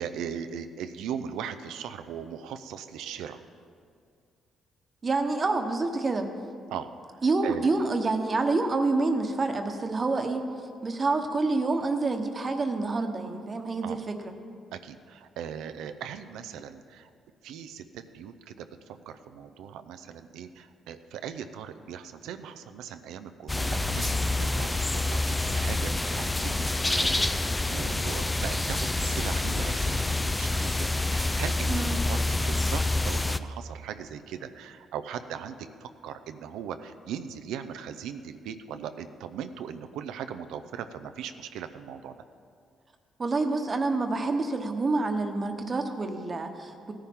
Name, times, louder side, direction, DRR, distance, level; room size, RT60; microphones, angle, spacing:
voice 1, 0.0-3.4 6.7-6.9 7.4-7.7 13.8-14.0 14.7-17.1 17.4-31.7 32.1-42.2, right 8 dB, 90° right, 9 dB, 0.5 m, -39 dB
voice 2, 5.0-6.3 7.2-10.5 10.8-14.3 31.7-32.0 43.2-46.9, right 3 dB, 35° right, 5 dB, 1.1 m, -27 dB
sound 1, 23.5-33.4, left 2 dB, 15° left, 0.4 m, -27 dB
16.5 x 10.0 x 3.7 m, 2.3 s
cardioid pair, 90°, 0 cm